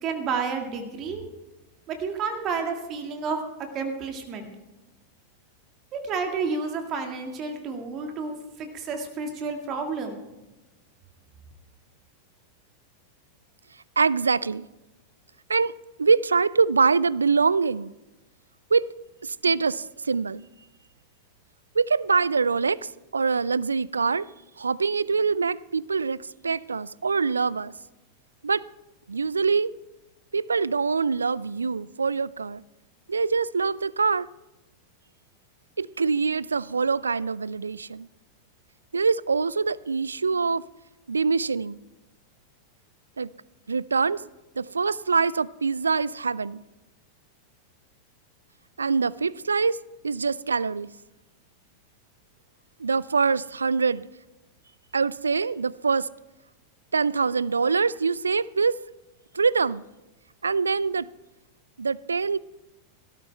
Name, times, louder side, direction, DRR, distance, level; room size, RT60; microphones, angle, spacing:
voice 1, 0.0-1.2 1.9-3.4 3.7-4.5 5.9-10.2, right 5 dB, 35° right, 1.9 m, -30 dB
voice 2, 14.0-14.7 15.5-15.7 16.0-17.9 18.7-18.9 19.2-20.4 21.8-22.8 23.1-24.3 24.6-26.2 26.4-27.7 28.4-28.6 29.1-29.7 30.3-32.6 33.1-34.3 35.8-38.1 38.9-40.6 41.1-41.8 43.2-43.3 43.7-44.2 44.6-46.6 48.8-49.8 50.0-50.9 52.8-54.1 54.9-56.1 56.9-58.7 59.3-59.8 60.4-61.1 61.8-62.4, right 5 dB, 75° right, 0.3 m, -24 dB
17.5 x 13.0 x 3.3 m
figure-of-eight pair, 90°, 0 cm